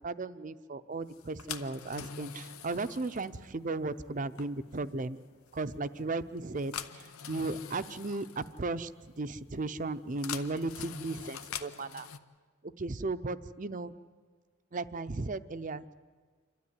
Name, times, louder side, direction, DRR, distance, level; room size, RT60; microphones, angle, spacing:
voice 1, 0.0-5.2 5.5-8.9 9.2-12.1 12.8-13.9 14.7-15.9, right 3 dB, 35° right, 12 dB, 0.6 m, -36 dB
sound 1, 1.1-12.2, left 7 dB, 85° left, 0.8 m, -45 dB
27.5 x 12.5 x 9.7 m, 1.5 s
head